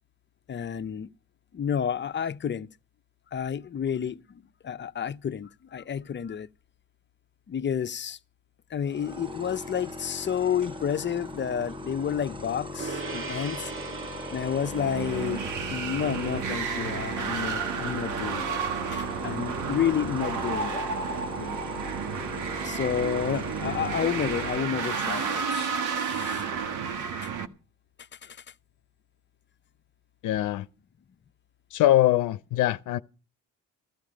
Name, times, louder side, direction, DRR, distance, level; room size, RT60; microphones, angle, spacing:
voice 1, 0.5-1.1 1.5-2.7 3.3-6.5 7.5-8.2 8.7-13.7 14.3-15.4 15.7-18.6 18.9-20.9 21.4-21.6 22.6-26.4 27.2-27.3 28.2-28.4, left 8 dB, 40° left, 0.7 m, -30 dB
sound 1, 8.8-24.6, left 2 dB, 15° right, 1.6 m, -39 dB
Gong, 12.8-22.5, right 4 dB, 45° right, 1.6 m, -43 dB
sound 2, 14.6-27.5, right 6 dB, 80° right, 1.6 m, -31 dB
voice 2, 30.2-30.7 31.7-33.0, left 14 dB, 80° left, 0.7 m, -22 dB
15.5 x 13.0 x 5.1 m
cardioid pair, 90°, 30 cm